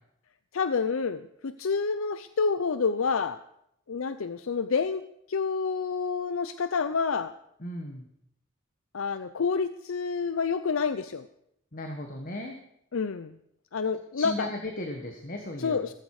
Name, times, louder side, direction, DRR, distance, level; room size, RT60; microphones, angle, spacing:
voice 1, 0.5-3.4 3.9-5.0 5.3-7.3 8.9-11.3 12.9-13.4 13.7-14.5 15.6-15.9, left 5 dB, 90° left, 12 dB, 0.6 m, -28 dB
voice 2, 7.6-8.1 11.7-12.5 14.1-15.9, left 1 dB, 45° left, 3 dB, 1.6 m, -36 dB
17.0 x 14.5 x 4.9 m, 0.76 s
head